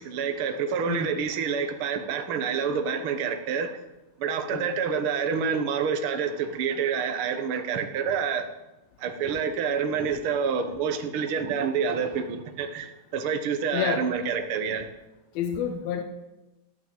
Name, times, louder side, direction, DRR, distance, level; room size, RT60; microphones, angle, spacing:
voice 1, 0.0-3.8 4.2-8.5 9.0-14.9, right 6 dB, 65° right, 7 dB, 1.3 m, -28 dB
voice 2, 13.7-14.1 15.3-16.0, left 8 dB, 90° left, 7 dB, 2.7 m, -29 dB
14.5 x 9.4 x 7.7 m, 1.0 s
omnidirectional pair, 4.1 m